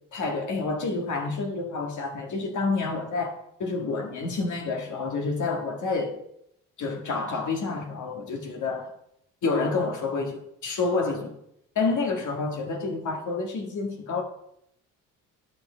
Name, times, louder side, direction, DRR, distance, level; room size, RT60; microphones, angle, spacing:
voice 1, 0.1-3.3 3.6-6.2 6.8-8.9 9.4-11.3 11.8-14.2, left 3 dB, 60° left, 1.7 m, -28 dB
10.5 x 5.3 x 4.9 m
supercardioid pair, 60°, 35 cm